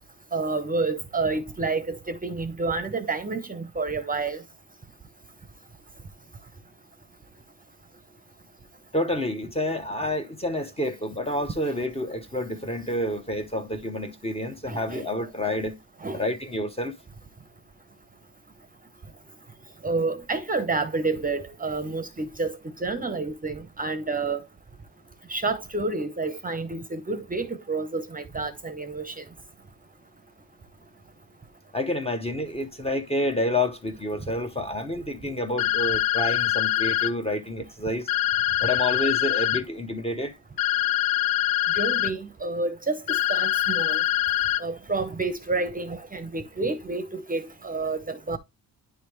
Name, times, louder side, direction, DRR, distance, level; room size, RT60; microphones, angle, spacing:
voice 1, 0.3-4.4 14.7-15.0 16.0-16.3 19.8-24.4 25.3-29.2 41.7-44.0 44.6-48.4, right 3 dB, 20° right, 0.7 m, -29 dB
voice 2, 8.9-15.8 16.1-16.9 31.7-38.1 38.6-40.4, left 1 dB, 15° left, 0.8 m, -29 dB
sound 1, 35.6-37.1 38.1-39.6 40.6-42.1 43.1-44.6, left 13 dB, 65° left, 0.5 m, -24 dB
10.0 x 3.4 x 3.0 m
cardioid pair, 95°, 38 cm